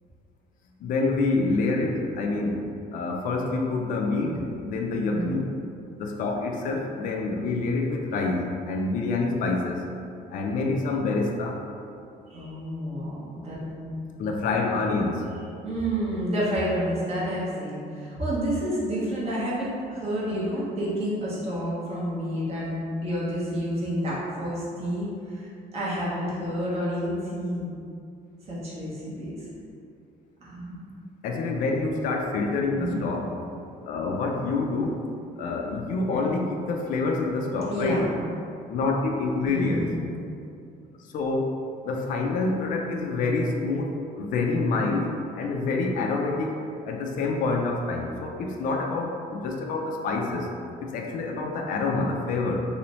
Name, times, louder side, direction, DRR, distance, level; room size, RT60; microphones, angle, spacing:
voice 1, 0.8-5.5 6.0-9.8 10.3-11.6 14.2-15.3 31.2-33.3 33.8-35.0 35.4-38.1 38.7-39.9 41.1-41.6 41.8-46.5 46.9-50.5 50.8-52.6, left 3 dB, 60° left, 1 dB, 0.4 m, -27 dB
voice 2, 12.3-13.9 15.6-27.7 28.5-29.4 30.4-30.8 32.7-33.0 37.7-38.1 39.4-40.0, equal, 40° right, -7 dB, 1.1 m, -29 dB
3.0 x 3.0 x 3.0 m, 2.5 s
cardioid pair, 125°, 15 cm